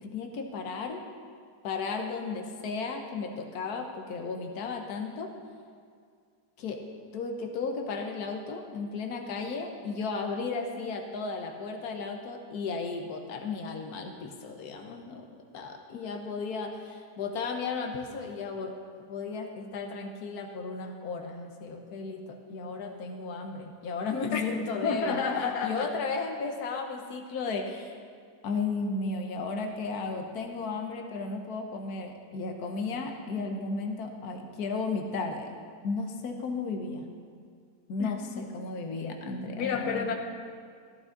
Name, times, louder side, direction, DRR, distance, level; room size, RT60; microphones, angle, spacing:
voice 1, 0.0-1.0 1.6-5.3 6.6-6.8 7.1-15.3 15.5-18.7 19.1-25.2 25.6-27.9 28.4-35.5 35.8-37.1 37.9-40.1, left 4 dB, 75° left, 4 dB, 1.5 m, -34 dB
voice 2, 24.8-25.9 38.0-38.4 39.6-40.1, left 5 dB, 90° left, 3 dB, 1.5 m, -30 dB
14.5 x 13.5 x 3.9 m, 2.1 s
omnidirectional pair, 1.7 m